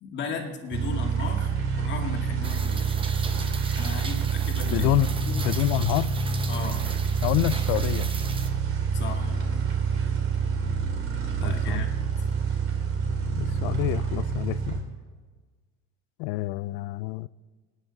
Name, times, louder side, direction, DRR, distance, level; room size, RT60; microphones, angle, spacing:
voice 1, 0.0-3.0 3.7-4.9 5.3-5.4 6.5-6.8 8.9-9.4 11.4-11.9, left 5 dB, 35° left, 2.0 m, -36 dB
sound 1, 0.7-14.8, right 5 dB, 40° right, 2.8 m, -27 dB
Rain, 2.4-8.5, right 4 dB, 15° right, 0.8 m, -38 dB
voice 2, 4.6-5.1 5.4-6.1 7.2-8.1 11.4-11.9 13.4-14.8 16.2-17.3, left 19 dB, 75° left, 0.5 m, -27 dB
26.5 x 9.8 x 4.0 m
cardioid pair, 145°, 32 cm